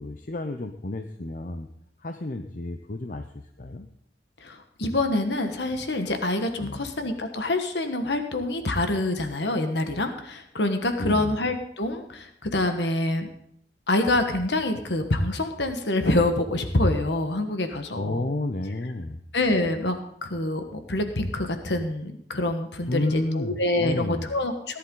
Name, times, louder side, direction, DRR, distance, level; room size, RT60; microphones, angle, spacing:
voice 1, 0.0-1.7 2.0-3.3 3.6-3.9 6.6-6.9 11.0-11.4 17.9-19.2 22.9-24.3, left 2 dB, 50° left, 6 dB, 0.7 m, -31 dB
voice 2, 4.4-13.3 13.9-18.2 19.3-20.6 20.9-24.8, left 2 dB, 80° left, 6 dB, 1.4 m, -26 dB
17.5 x 11.5 x 3.9 m, 0.71 s
head